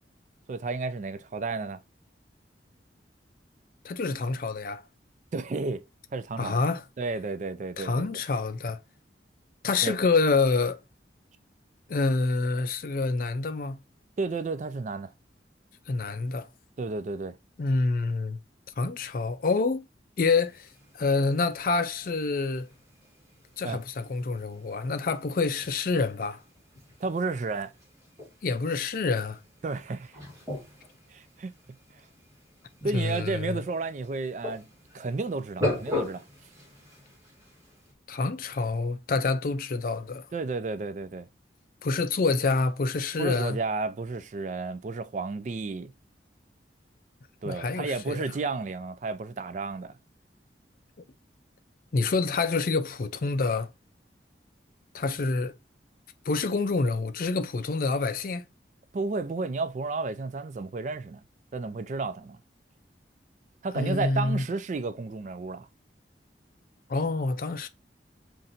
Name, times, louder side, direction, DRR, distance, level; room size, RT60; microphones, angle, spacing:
voice 1, 0.5-1.8 5.3-5.8 6.1-6.6 7.0-8.1 9.8-10.0 14.2-15.1 16.8-17.4 23.6-23.8 27.0-27.7 29.6-30.1 31.1-31.5 32.8-34.7 34.9-36.2 40.3-41.3 43.2-45.9 47.4-50.0 58.9-61.2 61.5-62.4 63.6-65.7, right 3 dB, 40° right, 0.3 m, -32 dB
voice 2, 3.8-4.8 6.4-6.8 7.8-8.8 9.6-10.8 11.9-13.8 15.9-16.5 17.6-18.4 18.8-19.8 20.2-20.7 21.0-22.7 23.6-26.4 28.4-29.4 32.9-33.6 38.1-40.3 41.8-43.6 47.4-48.3 51.9-53.7 54.9-55.5 56.3-58.4 63.7-64.4 66.9-67.7, left 3 dB, 50° left, 0.4 m, -27 dB
sound 1, 20.4-37.9, left 2 dB, 20° right, 1.5 m, -40 dB
5.6 x 2.6 x 2.5 m
head